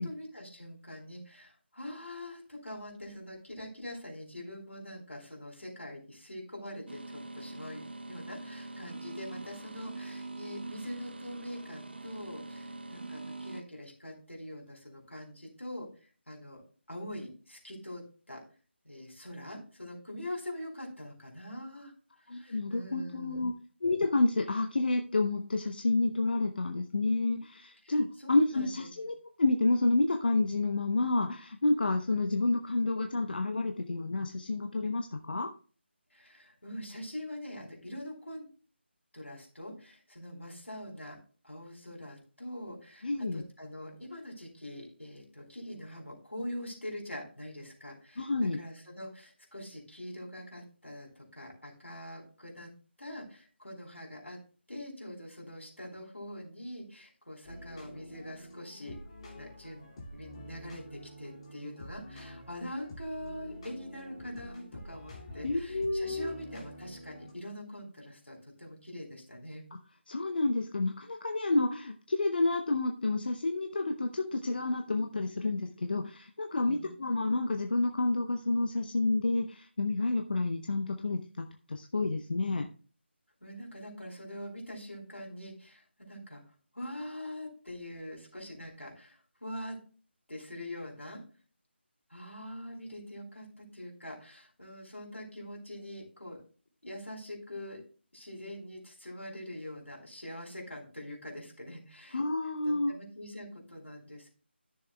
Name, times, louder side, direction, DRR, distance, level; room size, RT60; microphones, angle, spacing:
voice 1, 0.0-7.8 8.1-16.6 16.9-18.4 18.8-21.9 22.3-23.4 27.8-28.9 36.1-38.5 39.1-41.2 41.4-52.7 53.0-54.4 54.7-59.0 59.3-69.7 76.7-76.9 83.4-86.4 86.7-89.8 90.3-91.2 92.1-96.4 96.8-97.8 98.1-102.2 102.9-104.3, left 1 dB, 85° left, 0 dB, 4.1 m, -44 dB
sound 1, 6.9-13.6, right 2 dB, 55° right, 0.9 m, -43 dB
voice 2, 22.3-23.5 23.8-35.5 43.0-43.4 48.2-48.6 65.4-66.3 70.1-82.7 102.1-102.9, left 2 dB, 50° left, 5 dB, 0.8 m, -29 dB
sound 2, 57.4-67.3, equal, 30° left, 2.4 m, -48 dB
13.5 x 6.9 x 2.2 m, 0.39 s
figure-of-eight pair, 160°, 6 cm